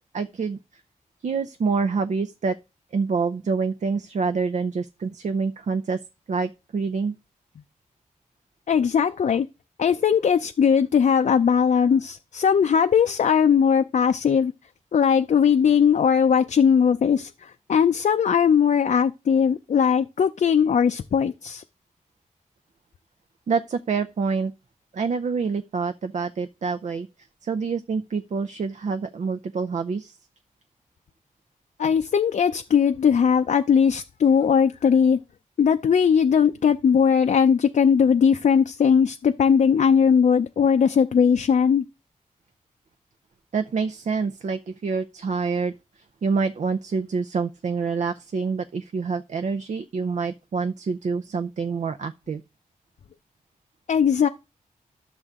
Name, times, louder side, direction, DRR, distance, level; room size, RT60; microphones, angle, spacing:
voice 1, 0.1-0.6 1.2-2.6 2.9-6.0 6.3-7.2 23.5-24.5 24.9-27.1 27.4-30.2 43.5-45.7 46.2-52.4, right 5 dB, 60° right, 0.6 m, -26 dB
voice 2, 8.7-9.5 9.8-14.5 14.9-21.6 31.8-35.2 35.6-41.8 53.9-54.3, left 7 dB, 60° left, 0.5 m, -19 dB
12.5 x 6.7 x 3.6 m
wide cardioid pair, 95°, 14 cm